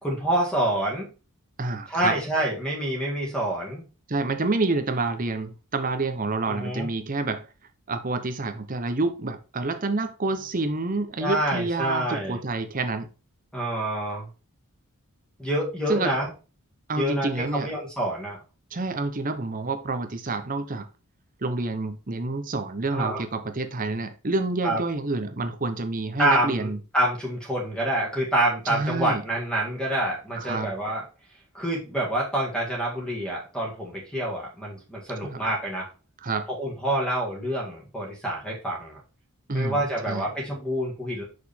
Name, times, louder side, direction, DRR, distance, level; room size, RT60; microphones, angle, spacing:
voice 1, 0.0-1.1 1.9-3.8 6.5-6.9 11.2-12.4 13.5-14.3 15.4-16.3 16.9-18.4 22.9-23.2 24.6-24.8 26.2-31.0 31.5-35.9 36.5-39.0 39.5-41.2, right 1 dB, 5° left, 1.8 m, -27 dB
voice 2, 1.6-2.2 4.1-7.5 7.9-13.1 15.9-16.1 16.9-17.7 18.7-20.9 21.4-26.8 28.7-29.2 30.3-30.7 35.2-35.4 36.2-36.5 39.5-39.8 40.1-40.3, right 3 dB, 40° right, 0.8 m, -28 dB
6.2 x 4.8 x 3.5 m
head